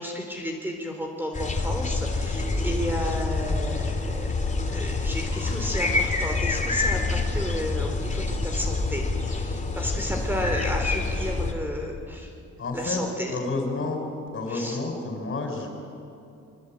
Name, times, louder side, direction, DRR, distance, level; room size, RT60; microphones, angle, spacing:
voice 1, 0.0-4.3 4.7-12.3 12.7-13.4 14.5-14.8, equal, 5° right, 3 dB, 3.7 m, -32 dB
sound 1, 1.3-11.5, left 3 dB, 25° left, 3.2 m, -27 dB
voice 2, 12.6-13.0 13.3-14.0 14.3-15.7, left 3 dB, 45° left, 4 dB, 5.4 m, -30 dB
23.5 x 22.5 x 8.9 m, 2.6 s
cardioid pair, 90°, 30 cm